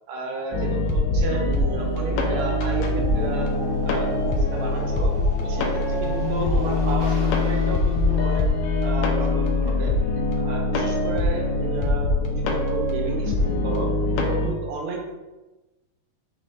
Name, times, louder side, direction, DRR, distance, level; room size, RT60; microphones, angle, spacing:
voice 1, 0.1-3.5 3.8-5.1 5.4-8.5 8.8-9.9 10.4-13.9 14.2-15.0, right 3 dB, 75° right, 0 dB, 2.0 m, -32 dB
sound 1, 0.5-14.5, left 2 dB, 85° left, 1.9 m, -23 dB
sound 2, 1.4-9.5, left 1 dB, 65° left, 1.1 m, -35 dB
5.6 x 2.5 x 3.1 m, 1.1 s
omnidirectional pair, 3.3 m